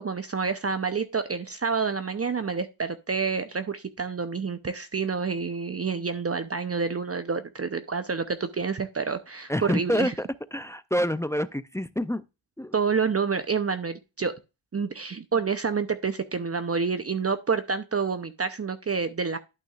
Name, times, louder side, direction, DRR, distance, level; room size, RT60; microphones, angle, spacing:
voice 1, 0.0-10.1 12.7-14.3 14.7-19.4, right 5 dB, 30° right, 0.7 m, -28 dB
voice 2, 9.5-12.2 12.6-12.7, equal, 5° left, 0.4 m, -27 dB
11.5 x 6.2 x 2.4 m
cardioid pair, 85°, 47 cm